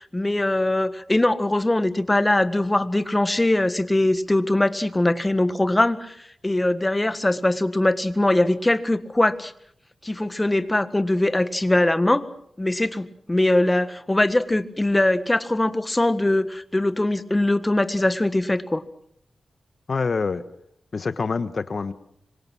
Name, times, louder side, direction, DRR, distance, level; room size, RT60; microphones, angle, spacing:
voice 1, 0.0-9.5 10.0-12.3 12.6-18.8, left 1 dB, 20° left, 12 dB, 1.6 m, -21 dB
voice 2, 19.9-20.4 20.9-21.9, left 4 dB, 55° left, 12 dB, 1.2 m, -26 dB
26.0 x 24.0 x 6.2 m, 0.68 s
cardioid pair, 75°, 0 cm